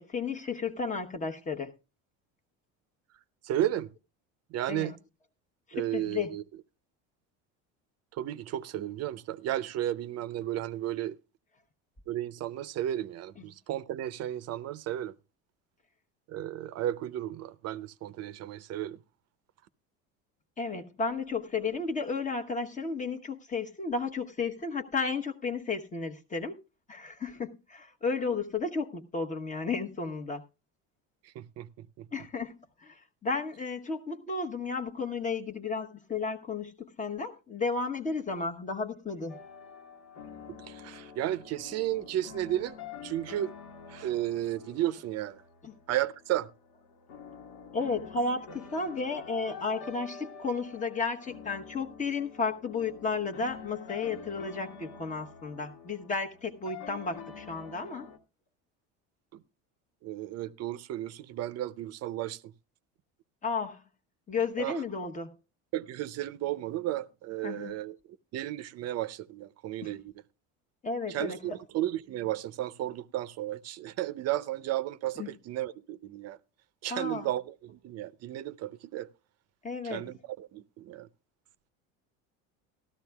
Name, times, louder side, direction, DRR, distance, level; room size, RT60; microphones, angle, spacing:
voice 1, 0.0-1.7 4.7-4.9 5.7-6.3 20.6-26.6 26.9-30.4 32.1-32.5 32.8-39.4 45.6-45.7 47.7-58.1 63.4-63.8 64.3-65.4 67.4-67.8 69.8-69.9 70.8-71.6 75.2-75.3 76.9-77.3 79.6-80.1, left 4 dB, 25° left, 1.0 m, -33 dB
voice 2, 3.4-3.9 4.5-5.0 5.7-6.4 8.1-11.2 12.1-15.1 16.3-19.0 31.2-32.1 40.7-42.8 43.0-43.5 43.9-45.4 45.9-46.5 59.3-59.4 60.0-62.5 64.6-64.8 65.7-68.0 68.3-70.2 71.1-76.4 76.8-79.1 79.8-81.1, right 13 dB, 50° right, 0.6 m, -33 dB
sound 1, 39.3-58.2, left 6 dB, 70° left, 1.6 m, -47 dB
16.5 x 13.0 x 2.3 m
supercardioid pair, 110°, 33 cm